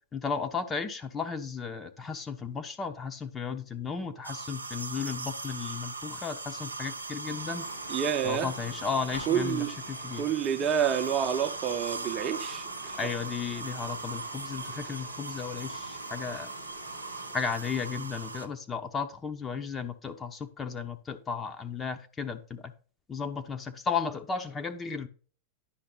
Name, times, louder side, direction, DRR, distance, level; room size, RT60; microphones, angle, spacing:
voice 1, 0.1-7.7 8.2-10.3 13.0-16.5 17.3-22.7 23.1-25.1, left 5 dB, 20° left, 1.0 m, -34 dB
sound 1, 4.2-18.5, right 4 dB, 80° right, 0.7 m, -39 dB
sound 2, 7.2-17.3, left 2 dB, 90° left, 4.2 m, -49 dB
voice 2, 7.9-8.5 9.3-9.7 10.2-13.0, right 8 dB, 30° right, 0.8 m, -28 dB
10.0 x 5.8 x 3.9 m
figure-of-eight pair, 90°, 0 cm